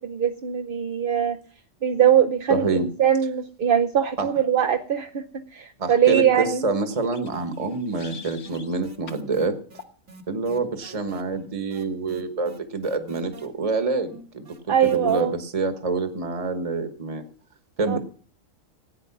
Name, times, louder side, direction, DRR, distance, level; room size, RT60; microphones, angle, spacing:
voice 1, 0.0-1.4 1.8-6.6 14.7-15.3 17.9-18.0, right 9 dB, 50° right, 4 dB, 0.8 m, -22 dB
voice 2, 2.5-2.9 4.2-4.3 5.8-9.6 10.3-17.2 17.8-18.0, right 3 dB, 30° right, 7 dB, 1.3 m, -27 dB
sound 1, 6.9-8.8 9.1-9.3 9.8-10.0, left 5 dB, 55° left, 1.5 m, -45 dB
sound 2, 7.3-15.2, right 4 dB, 75° right, 2.4 m, -45 dB
15.5 x 9.3 x 5.9 m, 0.44 s
omnidirectional pair, 1.4 m